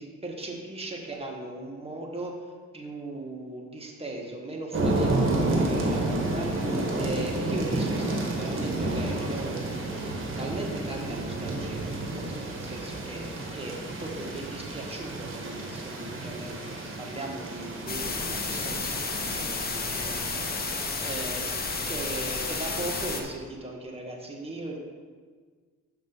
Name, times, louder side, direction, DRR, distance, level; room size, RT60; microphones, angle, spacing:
voice 1, 0.0-9.6 10.4-20.5 20.7-21.5 21.9-24.8, right 2 dB, 20° right, 0 dB, 1.5 m, -38 dB
sound 1, 4.7-23.2, right 2 dB, 45° right, 1.5 m, -31 dB
sound 2, 17.9-23.2, left 4 dB, 30° left, 0.8 m, -32 dB
6.6 x 5.9 x 4.5 m, 1.5 s
cardioid pair, 90°, 30 cm